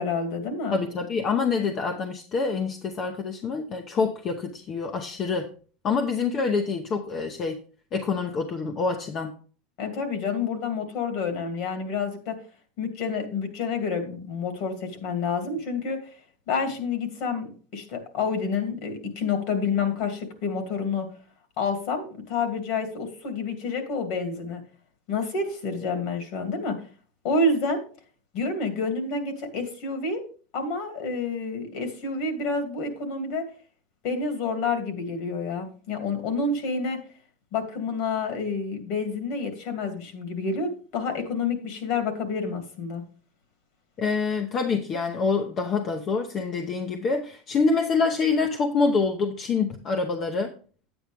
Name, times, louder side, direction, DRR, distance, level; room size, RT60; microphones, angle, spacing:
voice 1, 0.0-0.8 9.8-12.4 12.8-16.0 16.5-21.1 21.6-24.6 25.1-26.8 27.2-27.8 28.3-30.2 30.5-33.4 34.0-37.0 37.5-43.0, left 4 dB, 60° left, 5 dB, 2.6 m, -28 dB
voice 2, 0.7-5.5 5.8-7.6 7.9-9.4 44.0-50.5, left 4 dB, 35° left, 5 dB, 0.9 m, -26 dB
9.5 x 8.8 x 3.4 m, 0.40 s
supercardioid pair, 140°, 0 cm